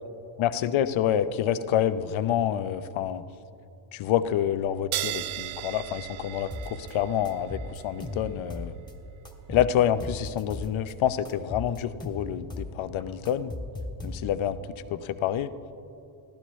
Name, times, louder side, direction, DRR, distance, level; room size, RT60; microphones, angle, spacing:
voice 1, 0.4-3.2 3.9-8.7 9.5-13.5 14.0-14.6 14.9-15.5, left 10 dB, 75° left, 12 dB, 0.8 m, -27 dB
sound 1, 4.9-11.9, right 15 dB, 80° right, 0.6 m, -39 dB
sound 2, 6.5-6.9 7.3-8.9 9.3-10.9 11.3-12.8 13.0-14.5, left 2 dB, 10° left, 1.6 m, -38 dB
24.5 x 16.5 x 3.1 m, 2.8 s
cardioid pair, 145°, 48 cm